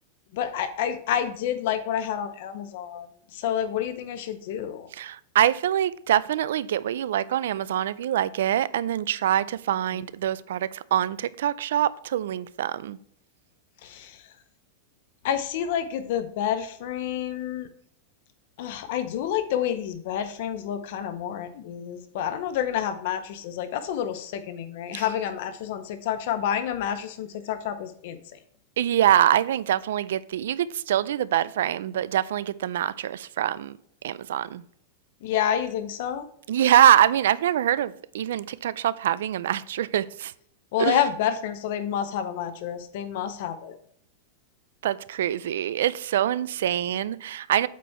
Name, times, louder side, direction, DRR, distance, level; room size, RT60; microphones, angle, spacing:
voice 1, 0.3-3.1 3.3-4.9 9.9-10.0 13.8-14.2 15.2-17.7 18.6-28.2 35.2-36.2 40.7-43.8, left 9 dB, 50° left, 0.6 m, -29 dB
voice 2, 4.9-13.0 24.9-25.0 28.8-33.8 34.0-34.6 36.5-40.3 40.8-41.0 44.8-47.7, right 11 dB, 75° right, 0.4 m, -24 dB
8.2 x 4.5 x 4.2 m
supercardioid pair, 170°, 0 cm